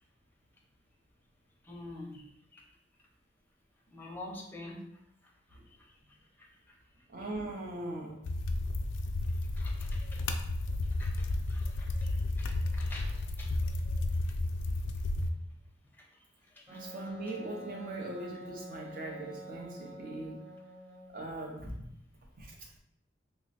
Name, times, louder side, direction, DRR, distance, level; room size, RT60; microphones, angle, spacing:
voice 1, 1.7-2.2 2.5-2.6 3.9-4.8 9.6-10.2 11.0-13.5 13.9-14.0 16.7-16.8, left 2 dB, 10° left, -2 dB, 0.6 m, -47 dB
voice 2, 7.1-8.2 16.7-20.4 21.1-21.9 22.4-22.5, right 2 dB, 50° right, 0 dB, 0.7 m, -40 dB
sound 1, 8.2-15.3, left 2 dB, 75° left, 0.4 m, -32 dB
Wind instrument woodwind instrument, 16.7-21.3, equal, 25° right, 1.1 m, -48 dB
3.1 x 2.3 x 4.0 m, 0.77 s
head